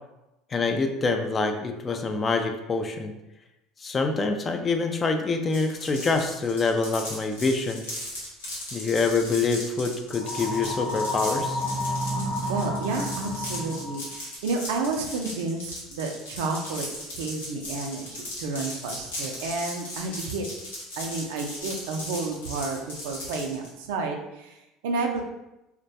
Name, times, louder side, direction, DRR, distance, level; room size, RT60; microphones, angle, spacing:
voice 1, 0.5-3.1 3.8-7.8 8.7-11.6, left 4 dB, 30° left, 5 dB, 0.3 m, -26 dB
sound 1, 5.5-23.7, left 1 dB, 90° left, 0.7 m, -37 dB
sound 2, 10.1-14.1, equal, 50° left, 0.7 m, -30 dB
voice 2, 12.5-20.5 21.0-25.2, right 3 dB, 75° right, 3 dB, 0.3 m, -31 dB
2.2 x 2.1 x 2.7 m, 0.94 s
hypercardioid pair, 75°, 0 cm